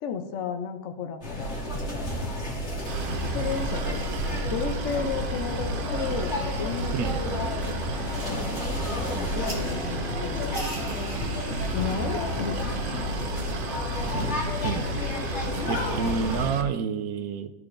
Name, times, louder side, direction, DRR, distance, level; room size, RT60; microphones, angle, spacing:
voice 1, 0.0-1.2 3.3-4.0 4.5-7.8 9.3-10.7 11.7-12.6, left 6 dB, 65° left, 6 dB, 0.9 m, -33 dB
sound 1, 1.2-16.5, equal, 50° left, 2.2 m, -31 dB
Boat Water vehicle, 2.9-16.6, right 1 dB, 65° right, 0.5 m, -33 dB
sound 2, 9.4-15.6, right 1 dB, 30° right, 1.5 m, -46 dB
voice 2, 15.7-17.5, right 6 dB, 85° right, 9 dB, 1.1 m, -29 dB
13.5 x 4.7 x 2.5 m, 1.0 s
omnidirectional pair, 1.5 m